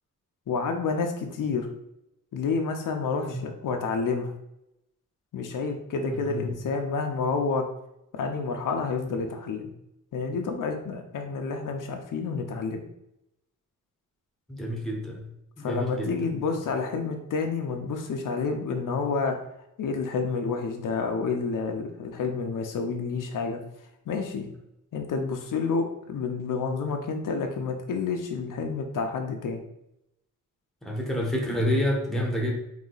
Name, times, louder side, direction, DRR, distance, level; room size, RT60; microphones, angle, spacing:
voice 1, 0.5-1.7 2.3-4.3 5.3-7.7 8.1-9.7 10.1-12.8 15.6-19.4 19.8-23.6 24.1-24.5 24.9-29.6, left 4 dB, 75° left, 4 dB, 0.6 m, -29 dB
voice 2, 6.1-6.5 14.5-15.3 15.6-16.1 16.5-16.6 30.8-32.5, equal, ahead, 0 dB, 0.8 m, -28 dB
4.0 x 2.7 x 3.9 m, 0.83 s
wide cardioid pair, 160°, 32 cm